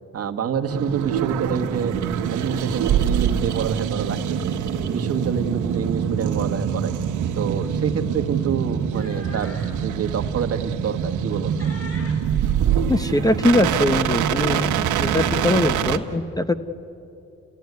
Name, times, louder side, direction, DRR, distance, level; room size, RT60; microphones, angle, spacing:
voice 1, 0.1-1.9 2.3-4.2 4.8-6.9 7.3-11.5, right 7 dB, 50° right, 6 dB, 1.6 m, -27 dB
sound 1, 0.7-16.0, right 8 dB, 80° right, 1.5 m, -24 dB
sound 2, 8.7-9.8 10.3-10.5 11.0-11.3 11.6-13.2, left 1 dB, 50° left, 6.3 m, -43 dB
voice 2, 12.9-14.7 15.0-16.5, left 1 dB, 10° left, 11 dB, 1.0 m, -21 dB
30.0 x 16.5 x 9.5 m, 2.8 s
cardioid pair, 90°, 30 cm